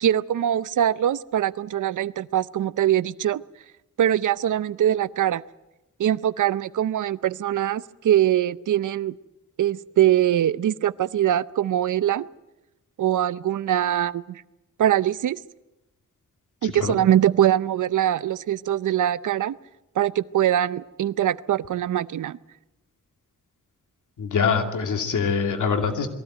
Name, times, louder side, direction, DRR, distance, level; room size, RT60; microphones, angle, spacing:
voice 1, 0.0-3.4 4.0-5.4 6.0-9.1 9.6-12.3 13.0-14.4 14.8-15.4 16.6-19.6 20.0-22.4, right 11 dB, 85° right, 17 dB, 0.7 m, -22 dB
voice 2, 16.6-17.0 24.2-26.1, left 5 dB, 85° left, 5 dB, 2.6 m, -24 dB
22.0 x 16.0 x 9.3 m, 0.98 s
cardioid pair, 70°, 30 cm